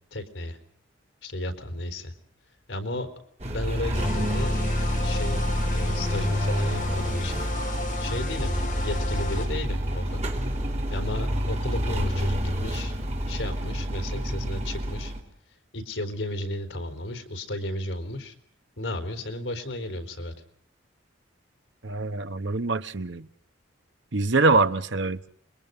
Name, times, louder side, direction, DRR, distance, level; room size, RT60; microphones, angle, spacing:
voice 1, 0.1-0.6 1.2-2.1 2.7-3.1 3.5-4.6 5.0-5.4 5.7-7.4 8.0-10.2 10.9-12.9 13.3-15.1 15.7-18.4 18.8-20.3, left 1 dB, 70° left, 3.9 m, -34 dB
sound 1, 3.4-15.2, equal, 35° right, 3.7 m, -28 dB
sound 2, 3.9-9.5, left 4 dB, 45° left, 5.8 m, -35 dB
voice 2, 21.8-23.3 24.1-25.3, right 3 dB, 70° right, 1.1 m, -24 dB
29.0 x 22.5 x 5.4 m
head